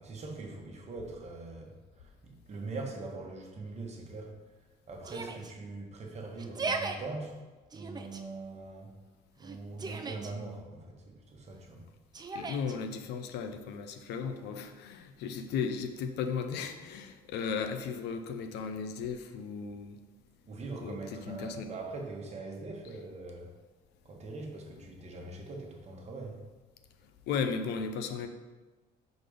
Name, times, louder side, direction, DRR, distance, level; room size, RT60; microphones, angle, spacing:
voice 1, 0.0-4.5 4.9-7.4 7.7-8.9 9.4-11.9 20.5-23.5 24.0-26.4, right 3 dB, 40° right, 1 dB, 1.2 m, -42 dB
Yell, 5.0-5.5 6.4-7.0 7.7-8.2 9.4-10.3 12.1-12.7, right 3 dB, 25° right, 0.5 m, -37 dB
voice 2, 12.3-20.0 20.8-21.7 27.3-28.3, left 6 dB, 80° left, 7 dB, 0.6 m, -35 dB
5.0 x 4.1 x 5.0 m, 1.2 s
cardioid pair, 110°, 17 cm